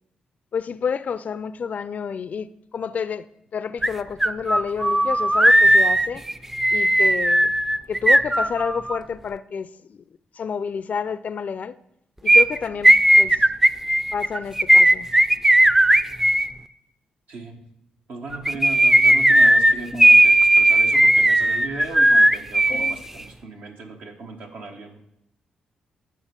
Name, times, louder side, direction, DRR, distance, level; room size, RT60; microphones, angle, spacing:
voice 1, 0.5-3.3 3.5-6.2 6.7-7.5 7.9-10.0 10.3-11.8 12.2-13.4 14.1-15.1 22.7-23.0, left 6 dB, 55° left, 0.4 m, -29 dB
sound 1, 3.8-3.9 4.2-9.0 12.3-16.5 18.3-22.9 23.2-23.3, right 1 dB, 10° right, 0.4 m, -16 dB
voice 2, 17.3-17.6 18.1-25.0, right 3 dB, 70° right, 1.1 m, -37 dB
9.4 x 4.8 x 5.2 m
hypercardioid pair, 45°, 3 cm